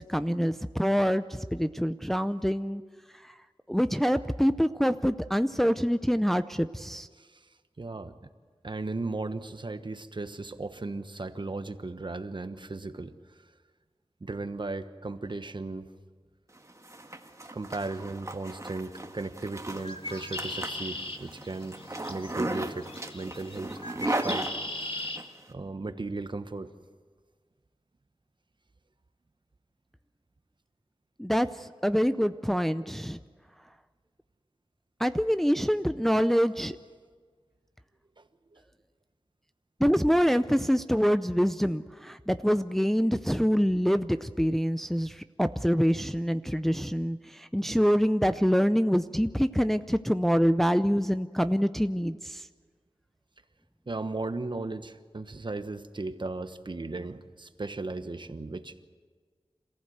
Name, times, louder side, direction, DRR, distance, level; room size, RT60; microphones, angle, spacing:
voice 1, 0.1-2.8 3.2-3.3 3.7-7.1 31.2-33.2 35.0-36.8 39.8-52.5, equal, 5° left, 11 dB, 0.5 m, -25 dB
voice 2, 7.8-8.1 8.6-13.1 14.2-15.9 17.5-21.8 22.1-22.9 23.1-24.5 24.8-25.1 25.5-26.7 38.2-38.6 53.9-58.7, right 3 dB, 50° right, 10 dB, 1.2 m, -36 dB
Zipper (clothing), 16.6-25.3, right 1 dB, 30° right, 1.6 m, -36 dB
Bird, 19.7-25.2, left 1 dB, 55° left, 1.8 m, -39 dB
27.0 x 15.0 x 8.0 m, 1.5 s
wide cardioid pair, 60°, 11 cm